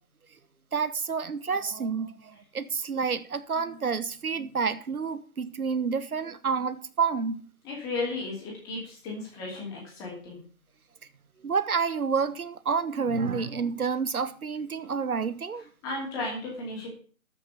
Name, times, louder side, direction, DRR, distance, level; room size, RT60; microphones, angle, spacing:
voice 1, 0.7-7.4 11.4-15.6, right 5 dB, 85° right, 1.3 m, -29 dB
voice 2, 7.6-10.4 15.8-16.9, left 3 dB, 10° left, 2.6 m, -34 dB
14.0 x 5.9 x 6.9 m
hypercardioid pair, 170°, 42 cm